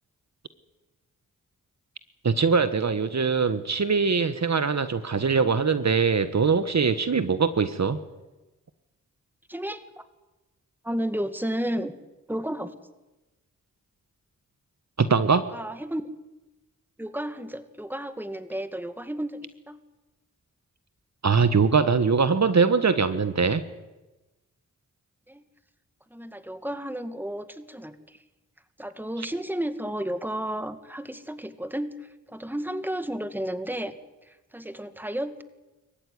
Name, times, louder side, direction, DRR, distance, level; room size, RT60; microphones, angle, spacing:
voice 1, 2.2-8.0 15.0-15.4 21.2-23.6 29.2-29.3, right 5 dB, 50° right, 12 dB, 1.4 m, -22 dB
voice 2, 9.5-10.0 10.8-11.9 12.3-12.7 15.5-16.1 17.0-19.8 25.3-25.4 26.1-28.2 28.8-32.0 32.3-34.0 34.2-35.4, right 1 dB, 5° right, 10 dB, 2.1 m, -32 dB
25.0 x 15.0 x 9.7 m, 1.1 s
cardioid pair, 40°, 34 cm